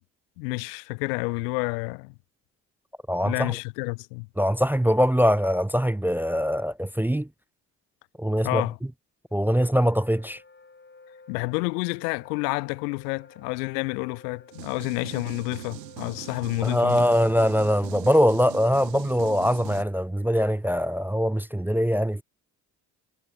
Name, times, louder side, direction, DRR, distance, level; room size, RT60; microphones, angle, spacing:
voice 1, 0.4-2.1 3.2-4.3 8.4-8.8 11.3-17.1, left 29 dB, 75° left, 1.0 m, -29 dB
voice 2, 3.1-3.6 4.4-7.3 8.2-8.6 9.3-10.4 16.6-22.2, equal, 5° right, 0.7 m, -22 dB
Wind instrument woodwind instrument, 9.3-19.2, left 3 dB, 20° left, 6.0 m, -53 dB
sound 1, 14.5-19.8, right 18 dB, 80° right, 3.8 m, -41 dB
hypercardioid pair, 55°, 49 cm